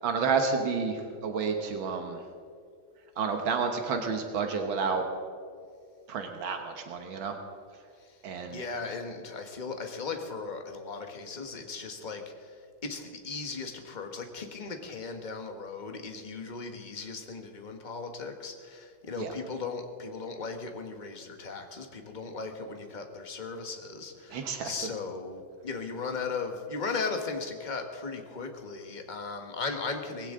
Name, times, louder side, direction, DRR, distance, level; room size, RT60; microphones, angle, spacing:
voice 1, 0.0-2.2 3.2-5.0 6.1-7.3 8.2-8.6 19.2-19.3 24.3-24.7, right 5 dB, 80° right, 5 dB, 1.9 m, -30 dB
voice 2, 8.5-30.3, left 4 dB, 25° left, 5 dB, 1.2 m, -37 dB
19.0 x 16.5 x 3.8 m, 2.2 s
omnidirectional pair, 2.2 m